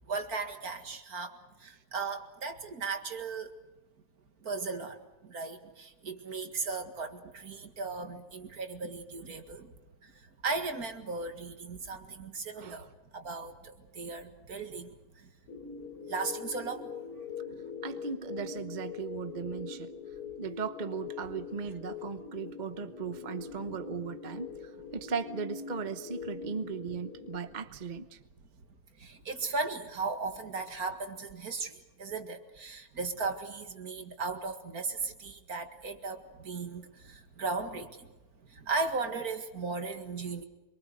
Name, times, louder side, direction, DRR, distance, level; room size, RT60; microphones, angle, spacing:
voice 1, 0.1-3.5 4.4-9.7 10.0-15.3 16.1-17.6 23.7-23.8 26.4-26.5 29.0-38.2 38.4-40.4, right 4 dB, 65° right, 6 dB, 2.5 m, -37 dB
sound 1, 15.5-27.4, left 5 dB, 90° left, 3.3 m, -43 dB
voice 2, 17.8-19.9 20.4-28.2, right 5 dB, 35° right, 9 dB, 1.0 m, -37 dB
26.0 x 24.0 x 6.6 m, 1.1 s
omnidirectional pair, 1.7 m